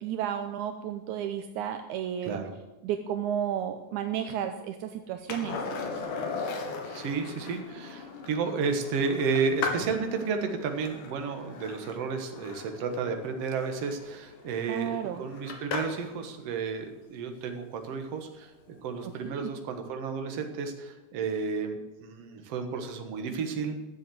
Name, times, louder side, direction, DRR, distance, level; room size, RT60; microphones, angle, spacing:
voice 1, 0.0-2.4 2.8-5.6 14.7-15.2 19.0-19.5, right 9 dB, 80° right, 7 dB, 2.0 m, -32 dB
voice 2, 2.2-2.5 6.9-18.5 18.8-23.9, right 5 dB, 55° right, 5 dB, 2.2 m, -32 dB
Skateboard, 5.3-16.1 18.7-18.8, left 4 dB, 80° left, 3.2 m, -38 dB
12.5 x 7.6 x 7.8 m, 1.1 s
omnidirectional pair, 3.6 m